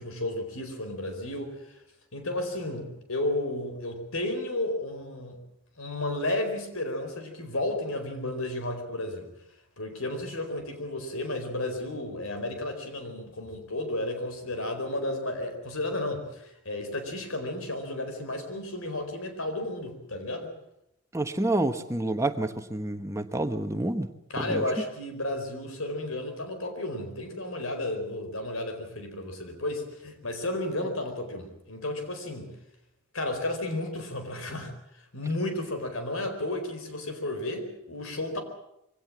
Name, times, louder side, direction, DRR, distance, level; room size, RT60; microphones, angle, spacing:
voice 1, 0.0-1.7 2.1-5.4 5.8-9.3 9.8-20.5 24.3-32.5 33.1-34.7 35.1-38.4, left 1 dB, 90° left, 6 dB, 4.5 m, -33 dB
voice 2, 21.1-24.1 24.4-24.6, right 1 dB, 15° right, 8 dB, 1.1 m, -28 dB
23.5 x 17.5 x 7.5 m, 0.84 s
head